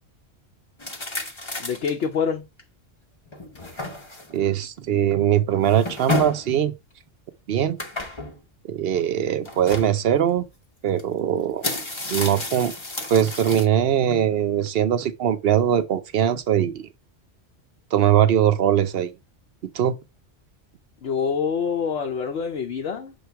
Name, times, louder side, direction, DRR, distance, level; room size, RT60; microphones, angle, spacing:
sound 1, 0.8-2.0 2.6-2.7 3.3-4.4 5.5-6.5 7.8-8.4 9.5-9.9 11.0-11.1 11.4-13.7, left 2 dB, 25° left, 0.9 m, -31 dB
voice 1, 1.6-2.5 21.0-23.1, left 6 dB, 65° left, 1.0 m, -26 dB
voice 2, 4.3-6.7 7.5-7.8 8.7-10.5 10.8-11.6 12.1-12.7 13.1-16.9 17.9-19.1 19.7-20.0, right 10 dB, 60° right, 0.8 m, -21 dB
6.9 x 3.2 x 4.4 m
omnidirectional pair, 1.2 m